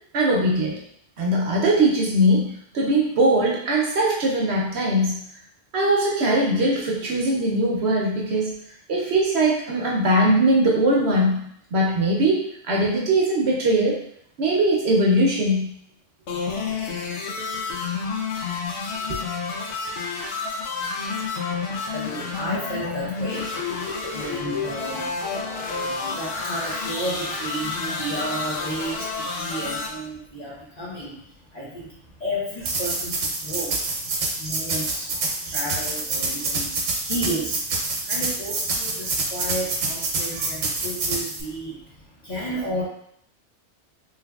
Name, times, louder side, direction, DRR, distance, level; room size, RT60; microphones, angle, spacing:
voice 1, 0.1-0.8 1.2-5.2 5.7-8.5 8.9-14.0 14.4-15.7 19.1-19.2 25.3-26.2 40.3-40.5, right 1 dB, 65° right, -2 dB, 0.8 m, -21 dB
sound 1, 16.3-29.9, left 4 dB, 70° left, 0.9 m, -29 dB
voice 2, 21.9-25.1 25.5-31.3 31.5-42.8, right 1 dB, 35° left, -7 dB, 0.9 m, -33 dB
sound 2, 32.6-41.4, right 3 dB, 85° right, 1.1 m, -27 dB
3.2 x 3.2 x 2.3 m, 0.69 s
omnidirectional pair, 1.3 m